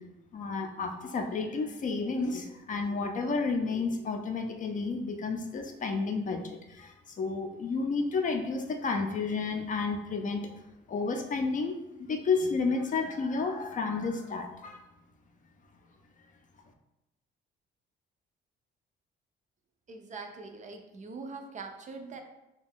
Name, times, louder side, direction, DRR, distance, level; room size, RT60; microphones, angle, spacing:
voice 1, 0.3-10.5 10.9-14.8, left 4 dB, 40° left, 4 dB, 0.4 m, -31 dB
voice 2, 19.9-22.2, right 4 dB, 40° right, 5 dB, 0.4 m, -42 dB
2.5 x 2.2 x 3.4 m, 0.93 s
cardioid pair, 90°, 20 cm